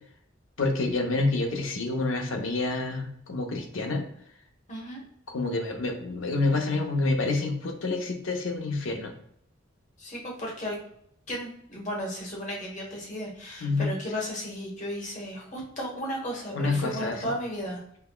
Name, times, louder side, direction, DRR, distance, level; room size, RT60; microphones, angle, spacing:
voice 1, 0.6-4.0 5.3-9.1 13.6-13.9 16.5-17.3, left 3 dB, 80° left, 3 dB, 0.7 m, -28 dB
voice 2, 4.7-5.0 10.0-10.8 11.3-17.8, equal, 40° left, -2 dB, 1.1 m, -34 dB
5.6 x 2.2 x 2.2 m, 0.70 s
head